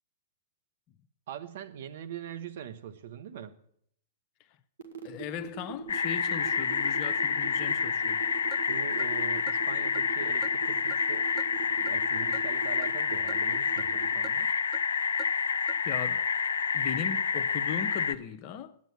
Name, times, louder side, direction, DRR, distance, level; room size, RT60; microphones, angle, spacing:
voice 1, 1.3-3.6 8.7-11.3 11.8-14.5, right 9 dB, 60° right, 1.2 m, -42 dB
sound 1, 4.8-14.1, right 8 dB, 75° right, 2.0 m, -41 dB
voice 2, 5.0-8.2 15.8-16.3 16.7-18.8, left 8 dB, 40° left, 0.7 m, -38 dB
sound 2, 5.9-18.1, left 6 dB, 75° left, 0.5 m, -28 dB
Clock, 8.5-8.6 9.0-9.1 9.5-9.6 9.9-10.1 10.4-10.5 10.9-11.0 11.4-11.5 11.9-12.0 12.3-12.5 12.8-12.9 13.3-13.4 13.8-13.9 14.2-14.4 14.7-14.8 15.2-15.3 15.7-15.8, right 13 dB, 30° right, 0.4 m, -43 dB
9.8 x 9.1 x 8.6 m
hypercardioid pair, 115°, 0 cm